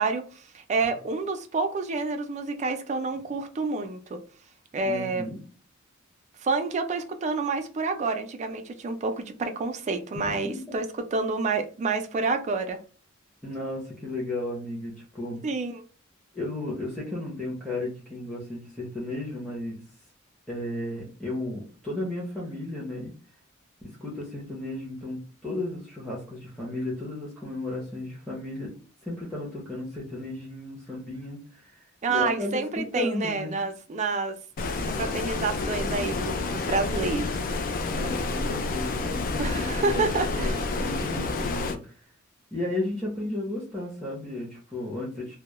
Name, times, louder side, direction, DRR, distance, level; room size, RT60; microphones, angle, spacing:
voice 1, 0.0-4.2 4.7-5.3 6.4-10.9 11.1-12.8 15.4-15.8 32.0-34.4 34.9-37.4 39.4-40.6, right 4 dB, 35° right, 0.4 m, -28 dB
voice 2, 4.8-5.4 10.1-10.6 13.4-15.4 16.3-19.8 20.5-23.1 23.8-28.7 29.0-33.6 37.6-42.0 42.5-45.4, left 2 dB, ahead, 0.7 m, -34 dB
Stream, 34.6-41.8, left 3 dB, 45° left, 0.3 m, -29 dB
2.2 x 2.0 x 2.9 m
head